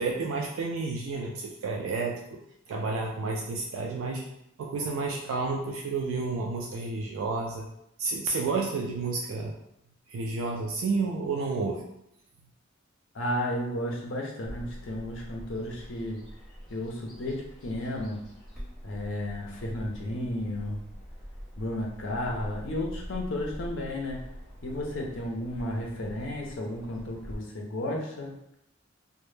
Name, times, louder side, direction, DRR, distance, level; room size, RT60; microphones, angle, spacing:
voice 1, 0.0-2.4 2.7-4.2 4.6-7.7 8.0-9.5 10.1-11.8, right 3 dB, 80° right, 0 dB, 0.3 m, -30 dB
voice 2, 13.1-16.2 16.7-17.4 17.6-18.2 18.8-20.8 21.6-24.2 24.6-28.3, left 1 dB, 65° left, 0 dB, 0.5 m, -33 dB
Bird vocalization bird call bird song, 14.4-27.3, equal, 5° left, 0.6 m, -44 dB
2.1 x 2.1 x 3.1 m, 0.78 s
head